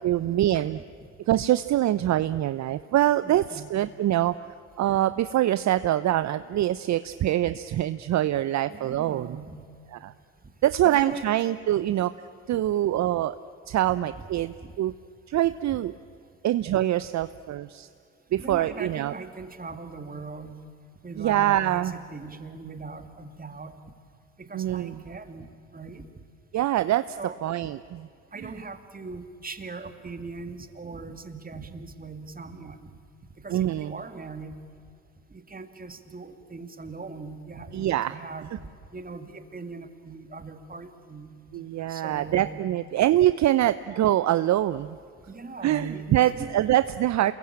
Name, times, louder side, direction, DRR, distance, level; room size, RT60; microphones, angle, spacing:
voice 1, 0.0-0.8 1.3-4.3 4.8-9.3 10.0-10.1 10.6-12.1 12.5-13.4 13.7-14.9 15.3-15.9 16.4-17.9 18.3-19.1 21.2-21.9 24.5-25.0 26.5-28.1 28.4-28.5 33.5-33.9 37.7-38.1 41.5-45.0 45.6-47.3, right 13 dB, 50° right, 14 dB, 0.7 m, -24 dB
voice 2, 3.2-3.8 8.7-9.6 10.8-11.2 12.5-12.7 14.6-14.8 18.3-20.7 21.0-23.8 24.4-26.1 27.2-27.4 28.3-32.9 33.4-34.6 35.3-38.5 38.9-41.3 41.9-42.5 45.3-46.5, right 4 dB, 25° right, 8 dB, 2.6 m, -40 dB
28.0 x 21.5 x 8.8 m, 2.3 s
hypercardioid pair, 55°, 35 cm